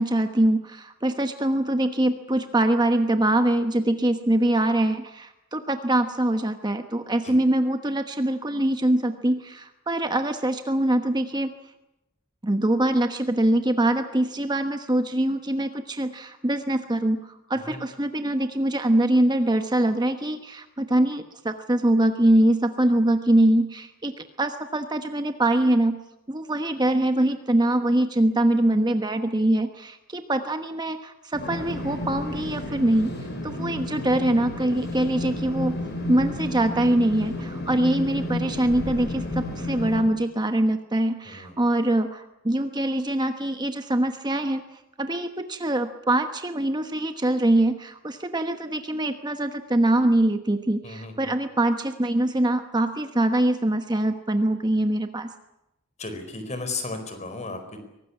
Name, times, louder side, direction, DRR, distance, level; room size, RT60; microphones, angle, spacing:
voice 1, 0.0-11.5 12.4-26.0 26.3-33.1 33.4-35.8 36.1-44.6 45.0-55.3, right 1 dB, 20° right, 7 dB, 1.1 m, -23 dB
sound 1, 31.3-40.0, left 1 dB, 50° left, 7.4 m, -32 dB
voice 2, 41.2-41.6 50.8-51.3 56.0-57.8, left 3 dB, 35° left, 8 dB, 4.4 m, -35 dB
23.5 x 19.0 x 9.8 m, 0.91 s
head